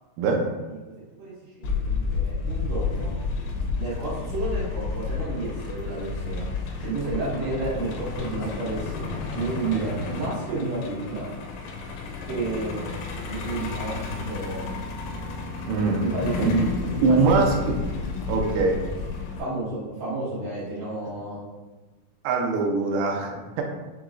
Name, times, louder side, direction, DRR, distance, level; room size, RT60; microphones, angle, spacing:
Truck, 1.6-19.4, left 4 dB, 90° left, 2.6 m, -31 dB
voice 1, 1.6-3.2 3.8-6.5 6.8-11.3 12.3-12.9 13.2-14.8 15.8-17.6 18.5-18.6 19.4-21.4, right 3 dB, 60° right, -10 dB, 2.8 m, -31 dB
voice 2, 15.7-16.1 16.4-16.5 17.0-17.8 18.3-18.8 22.2-23.6, right 4 dB, 90° right, 1 dB, 1.8 m, -22 dB
6.2 x 2.9 x 2.4 m, 1.2 s
omnidirectional pair, 4.4 m